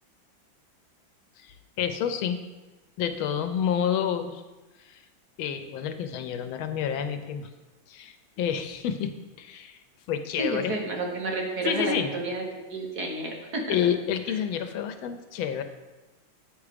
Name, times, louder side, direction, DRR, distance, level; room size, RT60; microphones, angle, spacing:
voice 1, 1.4-2.4 3.0-4.4 4.8-5.0 5.4-7.5 7.9-9.8 10.1-10.7 11.6-12.2 13.7-15.6, left 8 dB, 90° left, 9 dB, 1.5 m, -29 dB
voice 2, 10.4-12.4 12.7-13.8, right 2 dB, 55° right, 0 dB, 1.6 m, -30 dB
8.6 x 4.8 x 5.0 m, 1.2 s
omnidirectional pair, 2.2 m